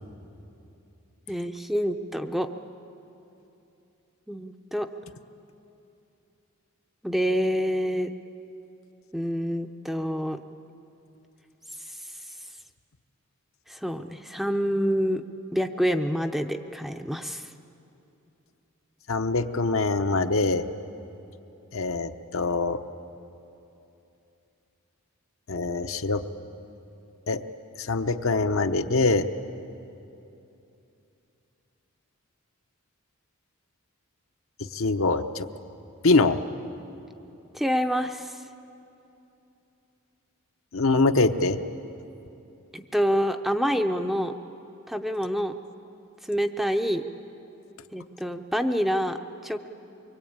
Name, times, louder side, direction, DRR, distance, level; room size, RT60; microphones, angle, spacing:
voice 1, 1.3-2.5 4.3-4.9 7.0-8.1 9.1-10.4 13.7-15.2 15.5-17.4 37.5-38.3 42.7-44.3 44.9-45.5 46.3-47.0 47.9-49.7, equal, ahead, 6 dB, 0.6 m, -27 dB
voice 2, 19.1-20.7 21.7-22.8 25.5-26.2 27.3-27.4 27.8-29.3 34.7-35.5 36.0-36.4 40.7-41.6, left 3 dB, 65° left, 8 dB, 0.9 m, -23 dB
23.5 x 23.5 x 8.8 m, 2.8 s
head